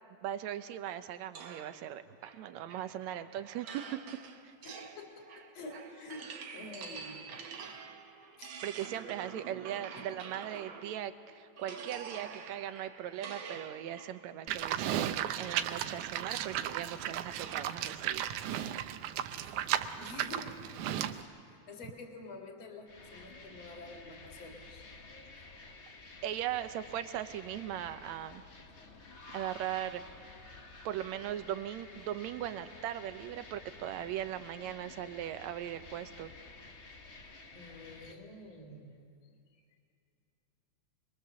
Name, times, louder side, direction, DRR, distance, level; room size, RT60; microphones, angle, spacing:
voice 1, 0.2-4.0 4.4-4.5 8.6-18.3 26.2-28.4 29.3-30.5 30.9-36.3, right 11 dB, 75° right, 11 dB, 2.0 m, -39 dB
sound 1, 1.3-11.1 11.6-17.8, right 5 dB, 55° right, 1.5 m, -48 dB
voice 2, 4.6-7.8 8.4-8.5 9.9-10.1 19.4-20.6 21.0-25.6 37.5-39.3, left 2 dB, 45° left, 1 dB, 2.9 m, -49 dB
Livestock farm animals working animals, 14.5-21.2, right 11 dB, 90° right, 2.2 m, -35 dB
sound 2, 22.9-38.1, left 3 dB, 75° left, 0.6 m, -52 dB
25.0 x 22.5 x 6.9 m, 2.5 s
omnidirectional pair, 3.5 m